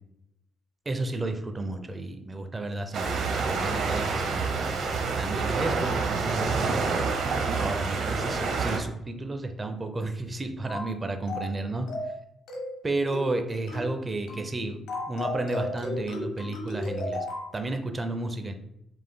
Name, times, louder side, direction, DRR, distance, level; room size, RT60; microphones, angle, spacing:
voice 1, 0.9-4.8 5.1-7.2 7.6-11.9 12.8-14.8 15.1-17.3 17.5-18.5, right 2 dB, 25° right, 6 dB, 0.6 m, -32 dB
sound 1, 2.9-8.8, right 4 dB, 65° right, 0.8 m, -27 dB
sound 2, 10.7-10.9 11.3-11.6 11.9-12.2 12.5-12.8 13.1-13.4 13.7-13.9 14.3-14.5 14.9-17.5, left 1 dB, 85° left, 1.1 m, -34 dB
5.1 x 3.7 x 2.2 m, 0.82 s
cardioid pair, 90°, 0 cm